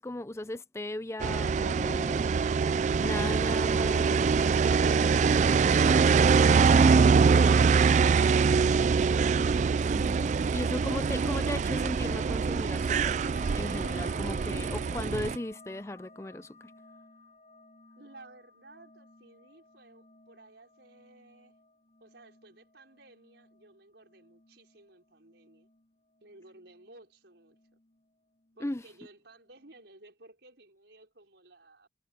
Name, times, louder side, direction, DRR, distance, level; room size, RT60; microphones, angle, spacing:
voice 1, 0.0-2.2 3.0-4.4 6.6-7.9 9.9-13.2 13.5-16.6 28.6-28.8, left 1 dB, 15° left, 0.5 m, -37 dB
sound 1, 1.2-15.4, right 5 dB, 40° right, 0.3 m, -24 dB
sound 2, 11.8-27.0 27.3-28.1 28.4-29.1 29.5-29.9, left 3 dB, 40° left, 3.4 m, -55 dB
voice 2, 18.0-21.6 22.0-25.7 26.2-27.8 28.6-31.9, right 2 dB, 70° right, 5.2 m, -55 dB
head